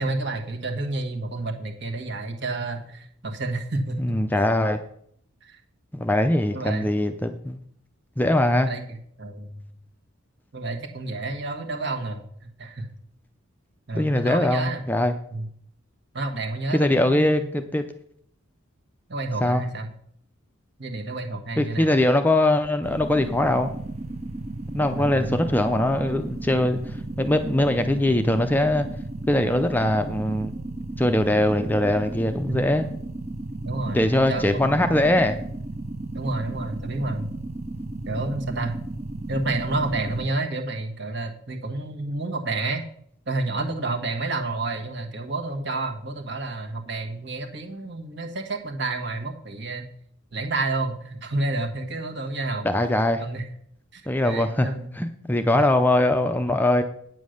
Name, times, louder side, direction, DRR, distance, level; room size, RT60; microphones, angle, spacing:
voice 1, 0.0-4.2 5.4-5.5 6.5-6.9 8.6-9.6 10.5-12.9 13.9-14.8 15.3-15.5 16.1-17.4 19.1-19.9 20.8-21.9 24.9-25.3 32.5-32.6 33.6-35.1 36.1-37.3 38.0-38.8 39.3-42.8 43.3-49.8 50.3-52.7 53.2-53.4 53.9-55.0, right 2 dB, 55° right, 4 dB, 1.4 m, -30 dB
voice 2, 4.0-4.8 5.9-7.6 8.2-8.7 13.9-15.2 16.7-17.9 19.4-19.6 21.6-23.7 24.7-28.9 29.3-30.5 31.0-32.9 33.9-35.4 52.6-53.2 54.1-54.7 55.0-56.8, left 1 dB, 10° left, 7 dB, 0.5 m, -22 dB
sound 1, 22.8-40.3, right 2 dB, 30° right, 0.6 m, -34 dB
9.2 x 7.3 x 6.4 m, 0.67 s
head